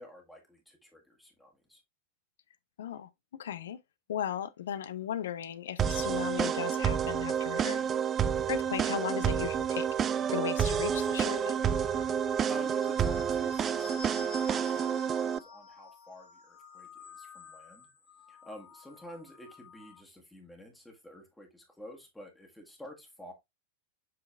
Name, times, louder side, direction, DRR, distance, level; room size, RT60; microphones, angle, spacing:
voice 1, 0.0-1.8 12.0-17.9 18.3-23.3, equal, 5° left, 1.7 m, -50 dB
voice 2, 2.8-3.1 3.4-3.8 4.1-7.9 8.5-9.9 10.3-11.6, left 10 dB, 60° left, 0.5 m, -36 dB
sound 1, 5.8-15.4, right 8 dB, 25° right, 0.4 m, -29 dB
sound 2, 10.2-20.0, left 4 dB, 40° left, 1.9 m, -51 dB
7.6 x 3.8 x 3.3 m
figure-of-eight pair, 90°, 0 cm